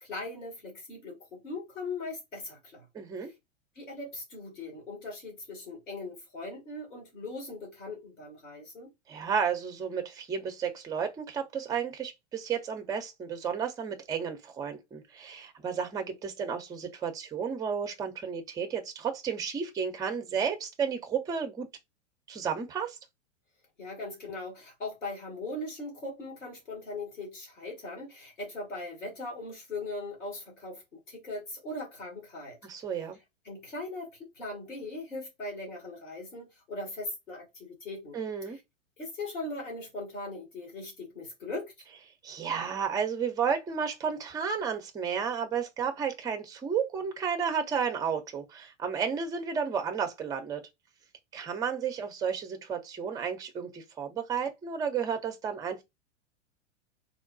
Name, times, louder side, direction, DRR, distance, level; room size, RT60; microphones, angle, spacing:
voice 1, 0.0-2.9 3.2-3.3 3.8-8.9 23.8-32.6 33.4-38.2 39.0-41.7, left 2 dB, 80° left, 1.8 m, -39 dB
voice 2, 2.9-3.3 9.1-21.7 22.3-23.0 32.6-33.2 38.1-38.6 42.2-50.6 51.3-55.8, right 6 dB, 10° right, 0.5 m, -32 dB
3.6 x 2.2 x 2.5 m
figure-of-eight pair, 100°, 36 cm